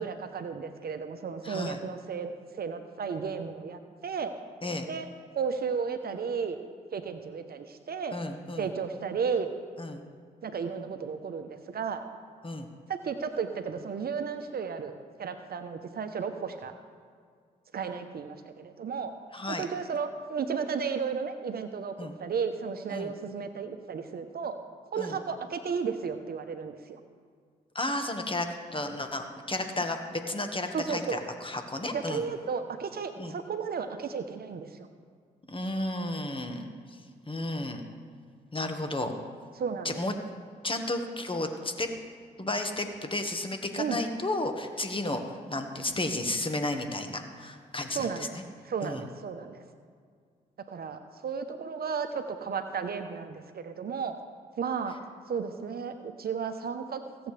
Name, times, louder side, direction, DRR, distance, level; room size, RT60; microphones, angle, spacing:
voice 1, 0.0-4.3 4.9-5.1 5.3-6.6 6.9-8.2 8.6-9.5 10.4-12.0 12.9-16.7 17.7-19.1 19.5-24.5 24.9-27.0 30.7-31.2 31.9-34.9 39.6-40.0 43.8-44.0 47.9-48.4 48.6-49.6 50.7-54.1 54.6-54.9 55.3-57.0, right 6 dB, 55° right, 8 dB, 0.9 m, -34 dB
voice 2, 1.4-1.8 4.6-4.9 8.1-8.7 9.8-10.0 12.4-12.7 19.3-19.6 22.0-22.1 22.9-23.1 25.0-25.1 27.8-32.2 33.2-33.3 35.5-36.7 37.3-37.8 38.5-39.1 39.9-40.1 40.6-41.9 42.4-48.4 48.8-49.0, left 2 dB, 30° left, 5 dB, 1.6 m, -33 dB
17.0 x 7.9 x 3.4 m, 2.1 s
hypercardioid pair, 45°, 19 cm